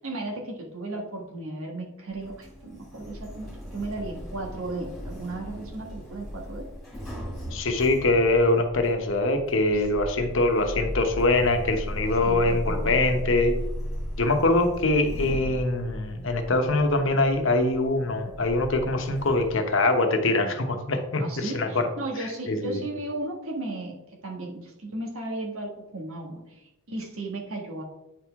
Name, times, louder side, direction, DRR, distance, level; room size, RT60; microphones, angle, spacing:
voice 1, 0.0-6.7 9.7-9.8 12.2-13.0 21.2-23.9 24.2-27.8, right 2 dB, 75° right, 0 dB, 1.7 m, -35 dB
Sliding door, 2.1-19.5, equal, ahead, 2.3 m, -36 dB
voice 2, 7.5-13.6 14.2-21.8 22.5-22.8, left 2 dB, 60° left, 5 dB, 1.0 m, -23 dB
9.4 x 4.6 x 3.6 m, 0.91 s
head